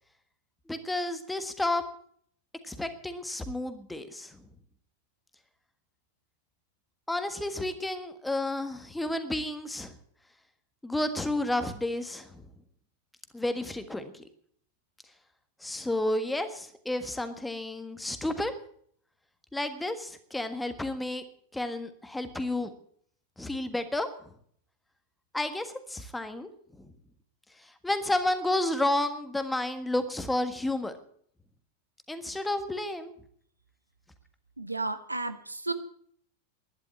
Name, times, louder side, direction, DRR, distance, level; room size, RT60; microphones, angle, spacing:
voice 1, 0.7-1.8 2.6-4.4 7.1-9.9 10.8-12.5 13.3-14.3 15.6-18.5 19.5-21.2 21.5-22.7 23.4-24.3 25.3-26.5 26.8-26.9 27.6-30.9 32.1-33.1, left 1 dB, 5° left, 9 dB, 1.6 m, -31 dB
voice 2, 34.6-35.7, right 2 dB, 85° right, 10 dB, 1.0 m, -33 dB
11.5 x 10.5 x 8.5 m, 0.62 s
figure-of-eight pair, 90°, 0 cm